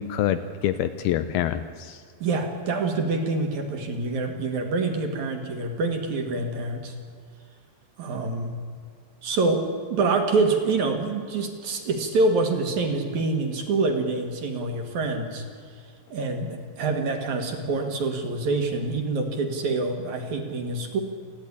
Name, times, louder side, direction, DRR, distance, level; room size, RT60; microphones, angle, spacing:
voice 1, 0.0-2.0, left 11 dB, 80° left, 11 dB, 2.2 m, -26 dB
voice 2, 2.2-7.0 8.0-8.6 9.2-15.5 16.1-21.0, right 3 dB, 50° right, 5 dB, 2.6 m, -26 dB
29.0 x 10.5 x 9.8 m, 2.1 s
omnidirectional pair, 5.1 m